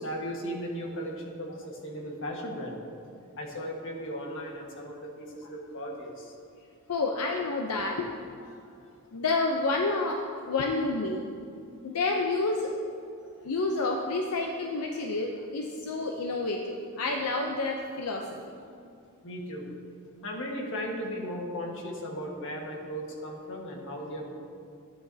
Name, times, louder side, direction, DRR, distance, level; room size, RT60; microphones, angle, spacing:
voice 1, 0.0-2.8 3.4-6.3 19.2-19.7 20.2-24.3, equal, 60° left, 0 dB, 1.5 m, -36 dB
voice 2, 6.9-8.1 8.4-8.5 9.1-11.3 11.8-12.7 13.4-18.4, left 3 dB, 85° left, 2 dB, 0.6 m, -29 dB
13.5 x 9.4 x 2.8 m, 2.4 s
head